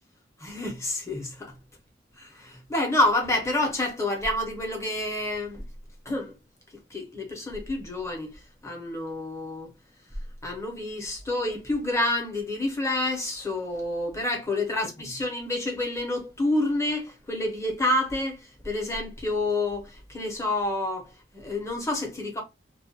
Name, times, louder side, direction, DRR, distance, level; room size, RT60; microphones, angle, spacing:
voice 1, 0.4-1.5 2.2-5.6 6.0-6.3 6.9-8.3 8.6-9.7 10.4-21.1 21.3-22.4, left 2 dB, 15° left, 0.8 m, -28 dB
2.3 x 2.2 x 2.7 m
head